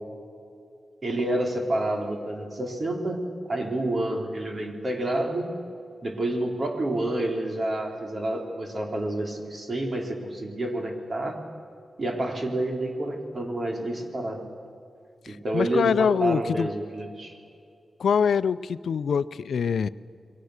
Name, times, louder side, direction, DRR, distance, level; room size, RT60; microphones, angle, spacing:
voice 1, 1.0-5.5 6.0-11.5 12.0-14.5 15.3-17.4, right 1 dB, 45° right, 2 dB, 3.9 m, -29 dB
voice 2, 15.2-16.7 18.0-19.9, left 6 dB, 90° left, 15 dB, 0.5 m, -24 dB
29.0 x 23.5 x 6.6 m, 2.5 s
wide cardioid pair, 110°, 0 cm